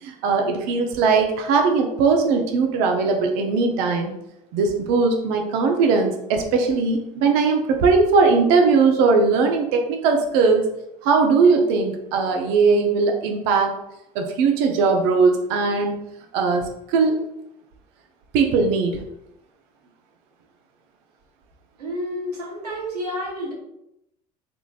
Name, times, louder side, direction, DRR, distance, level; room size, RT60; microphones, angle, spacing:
voice 1, 0.0-4.1 4.5-10.6 11.0-13.7 14.1-16.0 16.3-17.2 18.3-19.0, right 4 dB, 60° right, 3 dB, 0.7 m, -19 dB
voice 2, 21.8-23.5, equal, 80° right, -3 dB, 1.2 m, -30 dB
4.0 x 3.4 x 2.3 m, 0.82 s
figure-of-eight pair, 65°, 20 cm